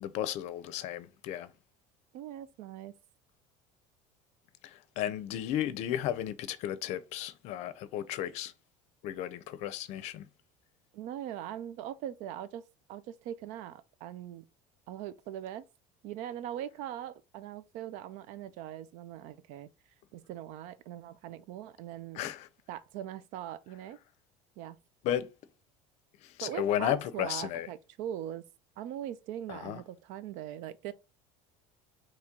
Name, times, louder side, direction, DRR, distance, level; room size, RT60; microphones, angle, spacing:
voice 1, 0.0-1.5 4.6-8.5 9.0-10.3 22.1-22.5 25.0-25.3 26.2-27.7 29.5-29.8, left 11 dB, 55° left, 0.6 m, -34 dB
voice 2, 2.1-3.0 10.9-12.6 12.9-14.4 14.9-15.6 16.0-19.7 20.1-22.2 22.7-24.0 24.6-24.8 26.4-28.4 28.8-30.9, right 11 dB, 65° right, 0.5 m, -41 dB
4.4 x 3.1 x 3.6 m
cardioid pair, 150°, 14 cm